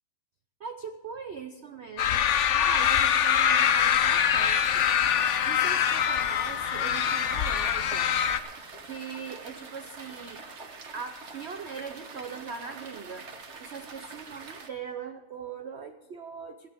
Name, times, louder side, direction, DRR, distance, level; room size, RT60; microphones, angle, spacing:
voice 1, 0.6-5.2 5.4-8.1 8.8-10.4 10.9-13.3 13.6-16.7, right 5 dB, 85° right, 7 dB, 0.5 m, -40 dB
sound 1, 2.0-8.4, left 9 dB, 85° left, 0.6 m, -24 dB
sound 2, 4.4-14.7, right 4 dB, 40° right, 1.2 m, -45 dB
17.0 x 13.0 x 3.6 m, 1.3 s
omnidirectional pair, 2.1 m